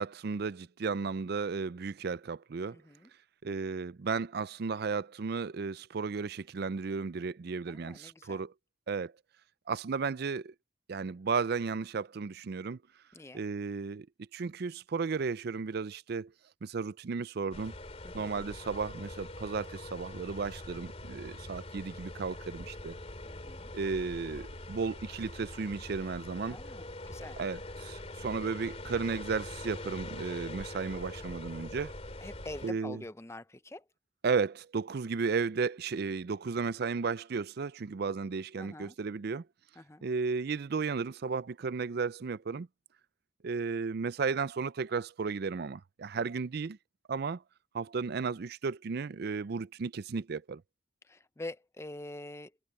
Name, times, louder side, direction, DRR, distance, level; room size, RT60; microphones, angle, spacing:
voice 1, 0.0-2.8 3.4-8.5 8.9-9.1 9.7-10.5 10.9-12.8 13.3-14.1 14.3-16.3 16.6-17.7 18.1-22.9 23.7-26.6 27.4-31.9 32.6-33.0 34.2-39.5 40.0-42.7 43.4-46.8 47.1-47.4 47.7-50.6, right 5 dB, 50° right, 0.4 m, -34 dB
voice 2, 2.7-3.1 7.7-8.4 13.1-13.4 18.0-18.4 23.2-23.7 26.5-27.4 32.2-33.8 38.6-39.0 39.8-40.0 46.1-46.2 51.0-52.5, left 2 dB, 15° left, 0.6 m, -45 dB
sound 1, 17.5-32.7, left 1 dB, 30° left, 3.2 m, -43 dB
head